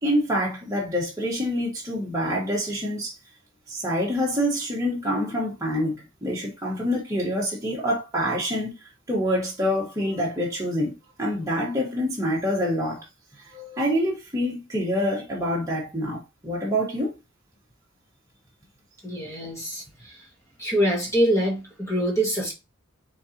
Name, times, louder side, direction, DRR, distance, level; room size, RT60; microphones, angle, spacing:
voice 1, 0.0-3.1 3.7-8.7 9.1-10.9 11.2-13.0 13.4-17.1, equal, 15° right, 1.4 m, -26 dB
voice 2, 19.0-20.1 20.6-22.5, equal, 15° left, 1.5 m, -25 dB
4.5 x 3.7 x 2.9 m
head